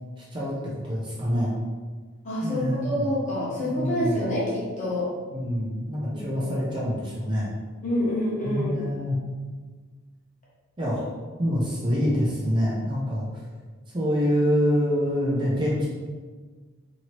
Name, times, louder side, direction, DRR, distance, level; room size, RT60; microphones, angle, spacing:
voice 1, 0.2-0.5 0.8-1.5 2.4-3.0 3.6-4.2 5.3-7.5 8.4-9.2 10.8-11.1 11.4-13.3 13.9-15.9, equal, 25° right, -6 dB, 0.5 m, -26 dB
voice 2, 2.2-5.1 6.1-6.4 7.8-8.7, left 1 dB, 35° left, -7 dB, 1.0 m, -27 dB
2.9 x 2.8 x 2.8 m, 1.5 s
head